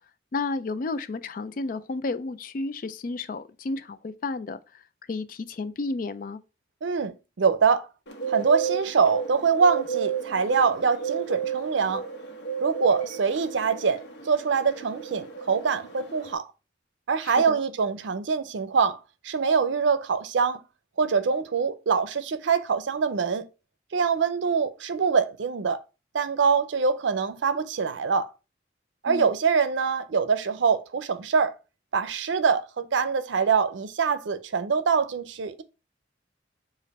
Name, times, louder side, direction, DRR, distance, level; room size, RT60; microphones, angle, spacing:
voice 1, 0.3-4.8 5.1-6.4 17.2-17.6 29.1-29.3, left 3 dB, 45° left, 0.4 m, -32 dB
voice 2, 6.8-7.9 8.3-12.0 12.6-16.5 17.1-19.0 19.2-20.6 21.0-23.4 23.9-25.8 26.1-28.3 29.0-31.5 31.9-35.6, right 5 dB, 85° right, 0.5 m, -24 dB
Bird, 8.1-16.3, right 7 dB, 70° left, 1.1 m, -33 dB
5.1 x 2.5 x 4.1 m
head